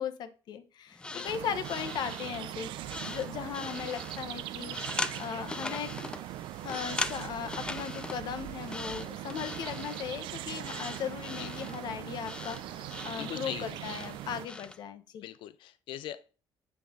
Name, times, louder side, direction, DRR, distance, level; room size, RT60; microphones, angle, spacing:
voice 1, 0.0-2.7 3.1-4.8 5.2-5.9 6.6-15.2, left 8 dB, 60° left, 10 dB, 0.9 m, -37 dB
sound 1, 0.9-14.8, left 3 dB, 10° left, 0.4 m, -41 dB
sound 2, 1.3-14.5, right 14 dB, 85° right, 0.4 m, -41 dB
voice 2, 13.2-13.8 15.2-16.3, left 13 dB, 85° left, 14 dB, 0.5 m, -41 dB
8.1 x 5.0 x 3.6 m, 0.35 s
cardioid pair, 165°, 8 cm